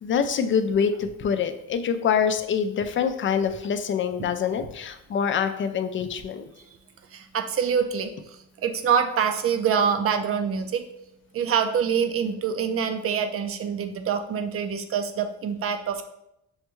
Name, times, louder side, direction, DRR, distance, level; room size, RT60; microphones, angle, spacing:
voice 1, 0.0-6.4, left 7 dB, 40° left, 8 dB, 0.4 m, -25 dB
voice 2, 7.1-10.8 11.3-16.0, right 7 dB, 50° right, 7 dB, 0.5 m, -25 dB
6.3 x 2.2 x 3.0 m, 0.82 s
cardioid pair, 90°, 30 cm